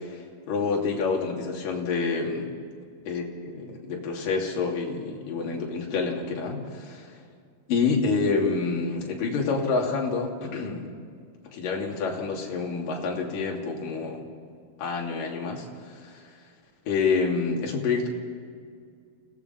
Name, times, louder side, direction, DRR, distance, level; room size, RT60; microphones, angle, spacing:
voice 1, 0.0-2.6 3.1-7.2 7.7-10.9 11.4-14.3 14.8-16.3 16.9-18.1, left 4 dB, 55° left, 0 dB, 4.3 m, -28 dB
29.0 x 18.0 x 5.9 m, 2.2 s
omnidirectional pair, 4.8 m